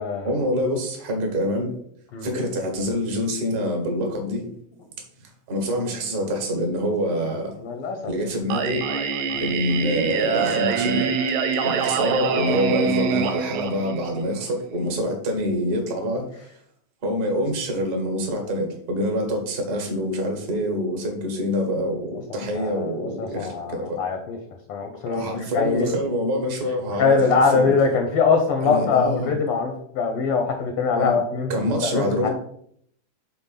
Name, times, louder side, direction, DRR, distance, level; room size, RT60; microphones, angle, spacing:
voice 1, 0.2-1.8 2.2-4.5 5.5-7.6 8.0-8.8 9.4-11.2 11.6-16.3 17.0-24.0 25.1-27.7 28.6-29.3 31.0-31.2 31.5-32.3, equal, 40° right, 2 dB, 1.7 m, -26 dB
voice 2, 7.6-8.0 9.3-9.5 22.5-24.4 24.7-26.0 27.0-31.5 31.8-32.3, left 5 dB, 65° left, 4 dB, 1.5 m, -22 dB
Singing, 8.5-14.4, right 6 dB, 80° right, 2.0 m, -25 dB
6.0 x 4.2 x 5.7 m, 0.68 s
omnidirectional pair, 3.4 m